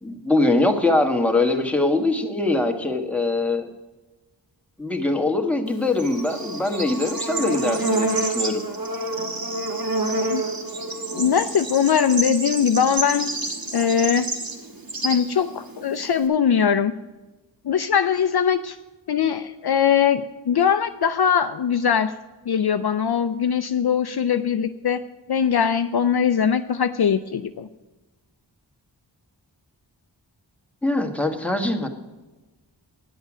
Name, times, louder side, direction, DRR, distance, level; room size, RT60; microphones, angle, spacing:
voice 1, 0.0-3.6 4.8-8.6 30.8-31.9, left 2 dB, 5° left, 3 dB, 1.4 m, -22 dB
Bird / Insect, 5.7-16.3, right 2 dB, 55° right, 1.6 m, -28 dB
voice 2, 11.1-13.3 13.7-14.3 15.0-16.9 17.6-18.8 19.1-22.1 22.5-25.0 25.3-27.7, left 7 dB, 60° left, 10 dB, 0.5 m, -21 dB
10.0 x 8.0 x 6.0 m, 1.2 s
wide cardioid pair, 60°, 44 cm